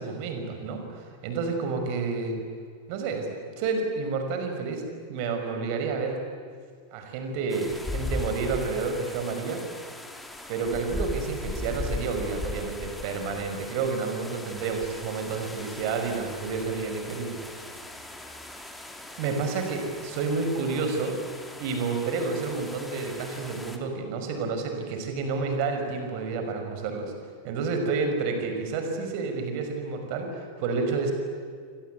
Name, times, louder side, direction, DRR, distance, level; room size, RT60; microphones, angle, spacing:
voice 1, 0.0-2.4 2.9-3.3 3.6-6.2 6.9-9.6 10.5-17.7 19.2-21.2 21.6-27.1 27.4-31.1, right 4 dB, 45° right, 5 dB, 5.8 m, -30 dB
sound 1, 7.5-23.8, left 1 dB, 5° left, 3.0 m, -38 dB
29.5 x 23.5 x 8.4 m, 2.1 s
figure-of-eight pair, 90°, 0 cm